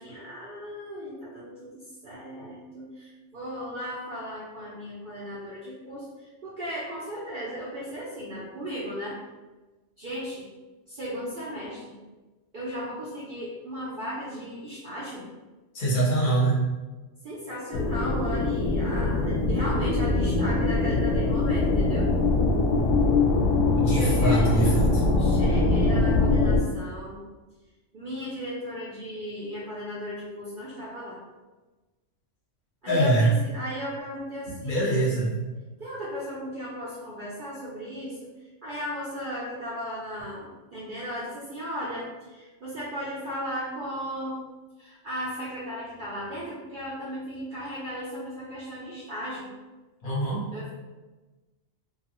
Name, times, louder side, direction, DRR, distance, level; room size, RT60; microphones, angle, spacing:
voice 1, 0.0-9.2 10.0-10.5 10.9-12.0 12.5-15.2 17.2-22.1 23.8-24.5 25.2-27.2 27.9-31.2 32.8-35.1 35.8-38.2 38.6-44.4 44.8-49.5 50.5-50.7, equal, 55° right, -8 dB, 0.6 m, -36 dB
voice 2, 15.7-16.6 23.8-25.0 32.9-33.3 34.6-35.3 50.0-50.5, right 2 dB, 45° left, -4 dB, 0.9 m, -23 dB
sound 1, 17.7-26.6, left 3 dB, 85° left, 0.9 m, -23 dB
2.7 x 2.4 x 2.9 m, 1.2 s
omnidirectional pair, 1.3 m